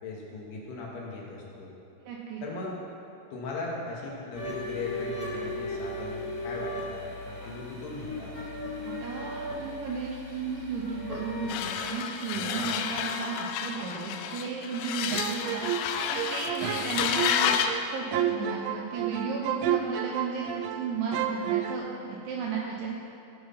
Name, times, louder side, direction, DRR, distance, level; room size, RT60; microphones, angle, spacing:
voice 1, 0.0-1.7 2.4-2.8 3.3-8.3 12.3-12.7 16.6-17.0, left 3 dB, 65° left, -3 dB, 3.3 m, -39 dB
voice 2, 2.0-2.4 8.9-23.0, right 5 dB, 75° right, -3 dB, 3.1 m, -34 dB
sound 1, 4.3-11.7, left 1 dB, 40° left, 1.1 m, -37 dB
sound 2, 11.5-17.8, left 8 dB, 85° left, 3.0 m, -30 dB
sound 3, 15.1-20.8 21.1-21.7, right 11 dB, 90° right, 2.5 m, -31 dB
15.5 x 7.8 x 5.6 m, 2.7 s
omnidirectional pair, 5.8 m